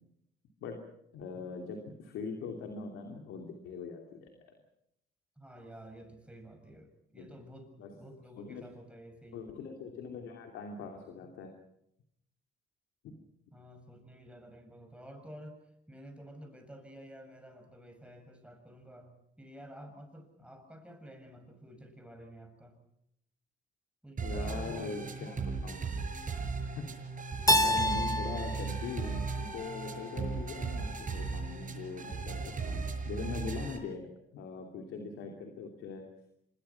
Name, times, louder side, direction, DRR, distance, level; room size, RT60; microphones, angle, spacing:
voice 1, 1.1-4.5 7.1-7.3 7.8-7.9 8.4-8.7 9.3-11.5 24.2-25.8 26.7-26.9 27.5-36.0, left 4 dB, 90° left, 3 dB, 3.0 m, -41 dB
voice 2, 5.4-9.5 13.5-22.8 24.0-25.4, equal, 5° right, 5 dB, 7.3 m, -51 dB
sound 1, 24.2-33.8, right 4 dB, 40° right, 6.2 m, -37 dB
Keyboard (musical), 27.5-30.3, left 1 dB, 15° left, 1.5 m, -30 dB
26.0 x 22.0 x 5.9 m, 0.79 s
cardioid pair, 90°, 20 cm